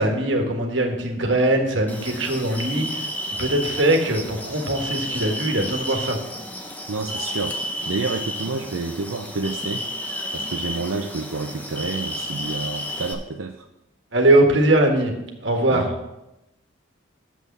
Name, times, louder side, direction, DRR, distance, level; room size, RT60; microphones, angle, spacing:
voice 1, 0.0-3.1 3.4-6.2 14.1-15.1 15.4-16.0, right 1 dB, 65° right, 3 dB, 1.5 m, -21 dB
sound 1, 1.9-13.1, left 1 dB, 10° left, 0.8 m, -32 dB
voice 2, 6.9-7.6 7.9-9.8 10.3-13.7 15.7-15.8, right 3 dB, 85° right, 4 dB, 0.6 m, -29 dB
7.1 x 6.3 x 7.1 m, 0.91 s
head